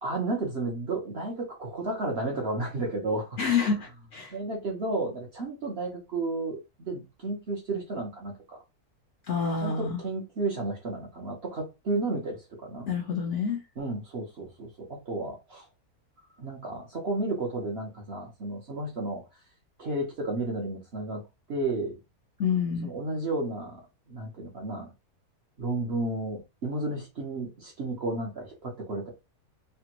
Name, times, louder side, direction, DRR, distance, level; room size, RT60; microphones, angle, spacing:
voice 1, 0.0-3.4 4.3-8.6 9.6-12.9 13.8-15.7 16.4-19.2 19.8-21.2 21.5-21.9 22.8-23.8 24.1-24.9 25.6-29.1, right 2 dB, 50° right, 0.9 m, -32 dB
voice 2, 3.4-4.3 9.3-10.0 12.9-13.6 22.4-22.9, left 6 dB, 65° left, 0.8 m, -28 dB
3.3 x 2.2 x 2.9 m
omnidirectional pair, 1.7 m